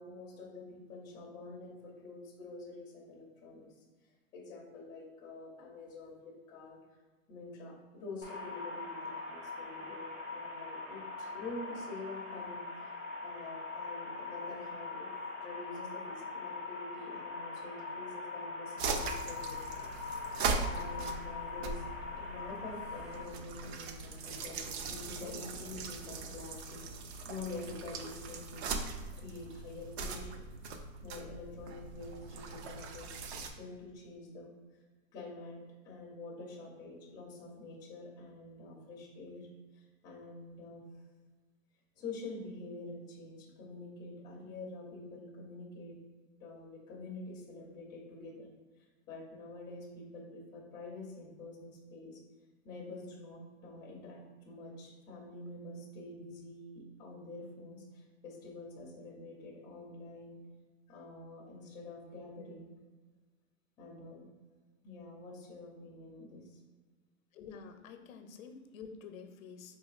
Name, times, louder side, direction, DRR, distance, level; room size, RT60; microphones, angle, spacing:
voice 1, 0.0-3.7 4.3-6.8 7.3-12.9 13.2-15.1 15.4-20.2 20.6-21.8 22.1-28.7 29.1-30.5 31.0-33.1 33.6-34.5 34.7-34.8 35.1-35.6 35.8-39.5 39.7-40.9 42.0-46.0 46.4-48.5 48.8-52.2 52.6-60.4 60.9-62.7 63.8-64.3 64.8-66.6, left 2 dB, 10° left, -3 dB, 0.4 m, -47 dB
sound 1, 8.2-23.2, left 3 dB, 75° right, 1.2 m, -42 dB
sound 2, 18.8-33.5, right 4 dB, 55° right, 0.5 m, -40 dB
voice 2, 67.3-69.8, left 6 dB, 85° left, 7 dB, 0.6 m, -49 dB
4.0 x 2.5 x 2.4 m, 1.3 s
hypercardioid pair, 135°, 40 cm